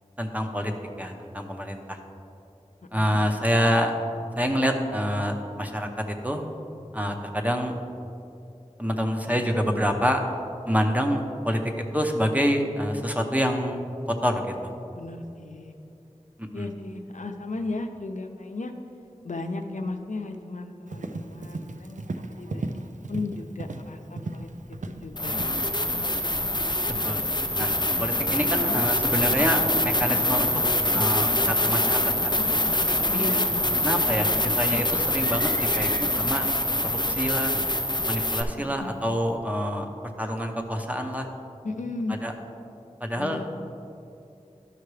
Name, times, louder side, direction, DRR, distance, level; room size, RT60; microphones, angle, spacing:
voice 1, 0.2-0.7 1.0-2.0 2.9-3.9 4.4-5.9 6.2-6.4 6.9-7.8 8.8-10.2 10.7-11.6 11.9-13.8 14.2-14.7 16.4-16.7 27.0-27.2 27.6-27.7 28.0-30.5 30.9-32.4 33.1-33.3 33.8-34.3 34.6-35.5 35.8-36.5 37.0-37.5 38.1-39.9 40.2-41.3 42.2-42.3 43.0-43.4, equal, 10° right, 4 dB, 0.8 m, -26 dB
voice 2, 14.9-15.7 16.5-18.7 19.2-24.5 24.9-25.6 33.1-33.4 38.6-38.9 41.6-42.2 43.2-43.4, left 3 dB, 85° left, 5 dB, 0.6 m, -35 dB
Livestock farm animals working animals, 20.9-39.4, right 2 dB, 85° right, 0.4 m, -41 dB
sound 1, 25.1-38.4, left 1 dB, 35° left, 0.4 m, -24 dB
12.0 x 5.8 x 3.2 m, 2.7 s
wide cardioid pair, 40°, 13 cm